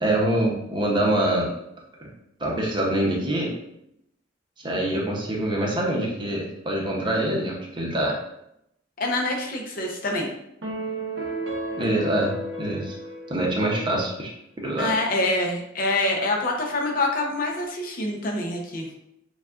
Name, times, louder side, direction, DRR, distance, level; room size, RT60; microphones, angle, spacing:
voice 1, 0.0-1.5 2.0-2.1 2.4-3.5 4.6-8.2 11.8-13.0 13.3-14.3 14.6-14.9, right 1 dB, 25° right, -2 dB, 0.8 m, -25 dB
voice 2, 9.0-10.3 14.8-18.9, left 2 dB, 50° left, 0 dB, 0.7 m, -26 dB
sound 1, 10.6-14.1, right 1 dB, 80° right, 0.7 m, -33 dB
6.9 x 2.3 x 2.5 m, 0.79 s
head